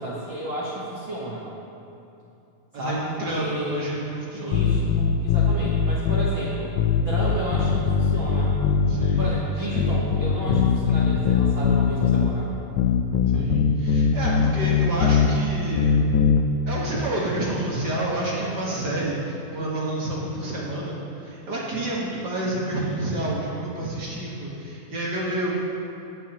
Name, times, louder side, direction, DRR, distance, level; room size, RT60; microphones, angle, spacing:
voice 1, 0.0-1.4 2.8-3.1 3.3-3.7 4.3-8.5 9.2-12.5, right 1 dB, 90° right, -5 dB, 1.0 m, -32 dB
voice 2, 2.7-4.8 8.9-9.3 9.7-9.8 13.3-15.9 16.7-25.5, right 1 dB, 60° right, -6 dB, 1.0 m, -29 dB
sound 1, 4.5-6.3 6.8-9.4 9.8-12.3 12.8-15.3 15.8-16.4, left 6 dB, 85° left, 1.7 m, -21 dB
16.5 x 9.4 x 3.0 m, 2.8 s
omnidirectional pair, 4.2 m